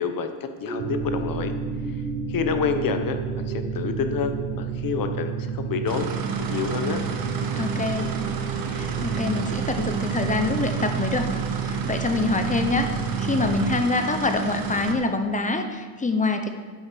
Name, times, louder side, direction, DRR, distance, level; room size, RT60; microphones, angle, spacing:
voice 1, 0.0-1.5 2.3-6.1 6.5-7.0, left 6 dB, 45° left, 8 dB, 1.1 m, -28 dB
sound 1, 0.6-14.2 14.7-14.8, right 1 dB, 10° right, 1.6 m, -39 dB
sound 2, 0.8-13.8, right 8 dB, 60° right, 1.2 m, -31 dB
sound 3, 5.9-14.9, right 5 dB, 45° right, 1.4 m, -31 dB
voice 2, 7.6-8.1 8.7-11.3 11.6-12.9 13.2-16.5, left 3 dB, 15° left, 6 dB, 0.8 m, -25 dB
9.4 x 8.7 x 6.8 m, 1.5 s
cardioid pair, 150°, 49 cm